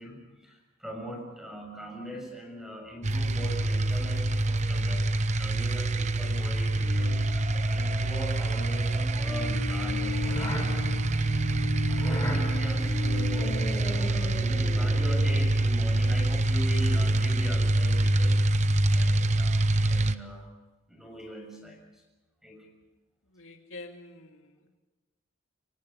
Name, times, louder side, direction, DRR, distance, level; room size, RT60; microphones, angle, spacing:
voice 1, 0.0-7.2 7.7-18.4 18.9-20.5 20.9-22.0 22.4-22.7, equal, ahead, 2 dB, 6.7 m, -41 dB
sound 1, 3.0-20.2, right 2 dB, 35° right, 0.8 m, -26 dB
sound 2, 6.7-15.8, left 2 dB, 15° left, 4.4 m, -36 dB
voice 2, 23.3-24.7, left 2 dB, 80° left, 4 dB, 2.4 m, -47 dB
27.5 x 24.5 x 5.3 m, 1.1 s
head